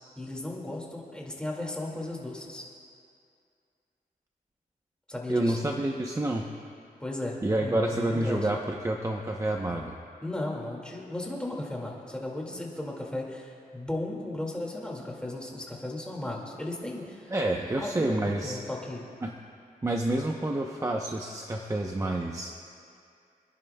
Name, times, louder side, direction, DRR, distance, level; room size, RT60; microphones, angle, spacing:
voice 1, 0.2-2.6 5.1-5.6 7.0-8.5 10.2-17.3 17.8-19.1, left 1 dB, 5° left, -2 dB, 2.2 m, -36 dB
voice 2, 5.3-6.4 7.4-9.9 17.3-18.6 19.2-19.3 19.8-22.5, right 1 dB, 20° right, 1 dB, 0.8 m, -28 dB
28.0 x 10.5 x 2.3 m, 2.4 s
cardioid pair, 90°, 15 cm